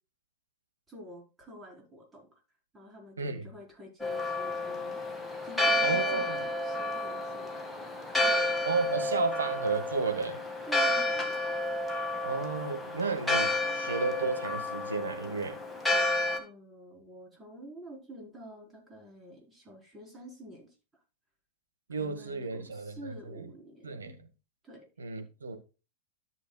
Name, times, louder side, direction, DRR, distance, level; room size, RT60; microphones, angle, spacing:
voice 1, 0.9-2.3 2.7-5.0 5.4-7.5 8.1-9.4 10.6-11.7 16.4-20.7 22.0-24.1 24.6-24.9, equal, 15° right, 4.6 m, -49 dB
Church bell, 4.0-16.4, left 2 dB, 5° left, 2.0 m, -31 dB
voice 2, 5.8-6.4 8.7-10.4 12.2-15.6 21.9-23.5 23.8-24.1 25.0-25.6, right 4 dB, 75° right, 1.8 m, -32 dB
13.0 x 7.0 x 2.4 m
figure-of-eight pair, 90°, 0 cm